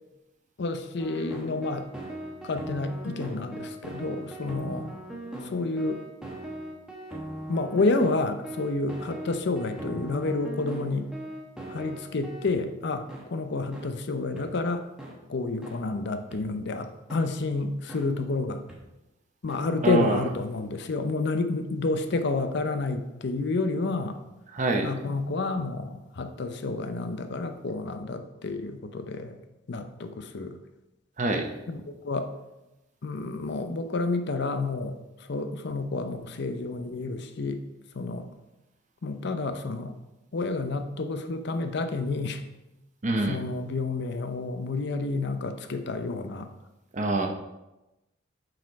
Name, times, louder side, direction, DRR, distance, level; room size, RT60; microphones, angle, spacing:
voice 1, 0.6-1.9 2.4-4.9 5.4-6.1 7.5-11.1 11.7-14.9 15.3-18.6 19.4-24.2 24.8-29.4 29.7-30.6 31.7-32.3 33.0-37.6 37.9-38.3 39.0-40.0 40.3-42.4 43.2-46.5, left 3 dB, 55° left, 8 dB, 0.6 m, -29 dB
sound 1, 1.0-12.5 13.1-13.2 13.7-13.9 14.4-14.5 15.0-15.1 15.6-15.8 16.3-16.4 17.1-17.2 17.9-18.0 18.7-18.8 19.5-19.6, right 1 dB, 5° right, 1.0 m, -39 dB
voice 2, 19.8-20.2 24.5-24.9 31.2-31.5 43.0-43.4 46.9-47.3, right 2 dB, 40° right, 4 dB, 0.7 m, -25 dB
6.5 x 4.4 x 4.7 m, 0.98 s
head